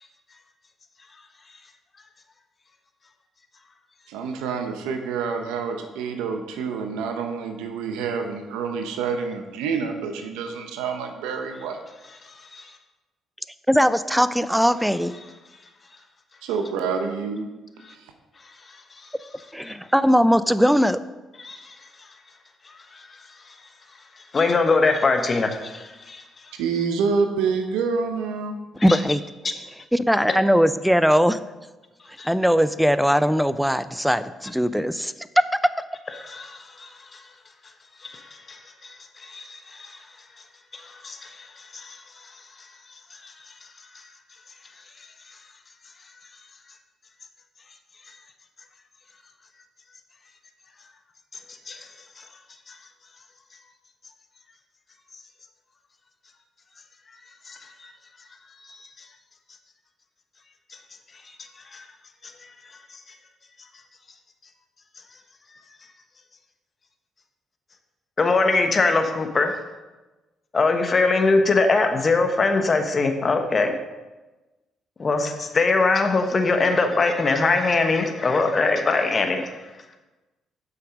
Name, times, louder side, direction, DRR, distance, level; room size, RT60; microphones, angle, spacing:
voice 1, 4.1-11.8 16.4-17.5 18.0-18.1 26.6-28.6, right 5 dB, 85° right, 5 dB, 0.9 m, -27 dB
voice 2, 13.7-15.1 19.5-21.0 28.8-29.2 29.9-31.4 32.2-35.7, equal, ahead, 14 dB, 0.5 m, -20 dB
voice 3, 21.4-21.7 24.3-26.2 28.8-29.0 32.2-32.3 36.2-37.2 38.0-40.0 40.7-42.0 43.2-43.3 51.7-51.8 52.2-52.3 52.7-52.8 57.5-57.9 58.6-58.8 61.7-61.9 68.2-69.6 70.5-73.7 75.0-79.6, left 3 dB, 40° left, 6 dB, 1.1 m, -22 dB
7.9 x 5.9 x 5.2 m, 1.1 s
supercardioid pair, 60°, 0 cm